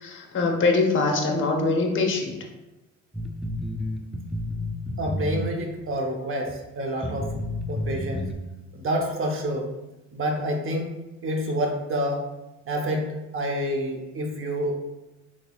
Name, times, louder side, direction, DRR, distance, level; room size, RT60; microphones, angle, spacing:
voice 1, 0.0-2.3, left 3 dB, 40° left, 1 dB, 0.8 m, -23 dB
sound 1, 3.1-5.8 6.5-6.6 7.0-8.3, left 1 dB, ahead, 0.3 m, -30 dB
voice 2, 5.0-7.3 7.7-8.2 8.7-9.7 10.1-10.9 11.2-12.2 12.7-13.1 13.3-14.7, equal, 45° right, 2 dB, 0.8 m, -28 dB
4.0 x 3.1 x 2.3 m, 1.0 s
cardioid pair, 90°, 30 cm